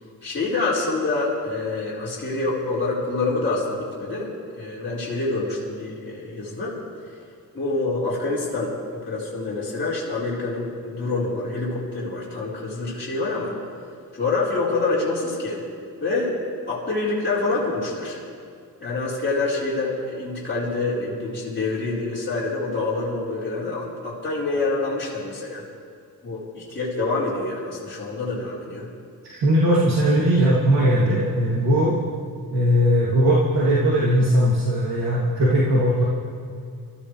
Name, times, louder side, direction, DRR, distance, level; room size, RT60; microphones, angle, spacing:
voice 1, 0.2-6.7 7.5-8.7 9.0-13.5 14.1-15.6 16.0-16.3 16.7-18.2 18.8-25.6 26.2-28.9, left 3 dB, 30° left, -9 dB, 4.9 m, -26 dB
voice 2, 29.2-32.0 32.5-36.0, equal, 80° right, -8 dB, 3.2 m, -19 dB
25.0 x 14.5 x 3.4 m, 2.4 s
cardioid pair, 100°, 39 cm